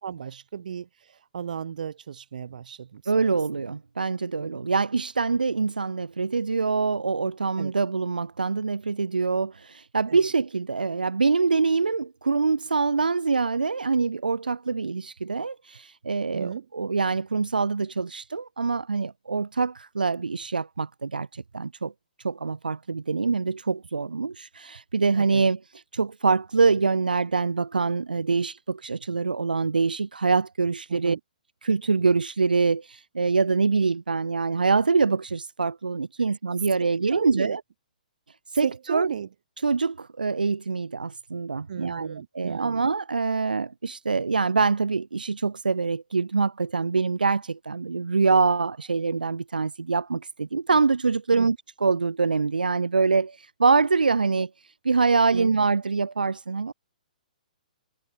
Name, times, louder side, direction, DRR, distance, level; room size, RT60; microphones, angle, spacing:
voice 1, 0.0-3.3 3.7-3.8 4.4-4.7 7.6-7.7 10.1-10.2 16.3-16.7 25.2-25.4 30.9-31.2 36.8-37.6 38.6-39.3 41.7-42.9 51.3-51.5 55.3-55.5, right 8 dB, 65° right, 4.5 m, -35 dB
voice 2, 3.1-21.9 22.2-31.2 31.6-37.6 38.5-39.1 39.6-56.7, right 4 dB, 85° right, 0.4 m, -25 dB
figure-of-eight pair, 125°, 5 cm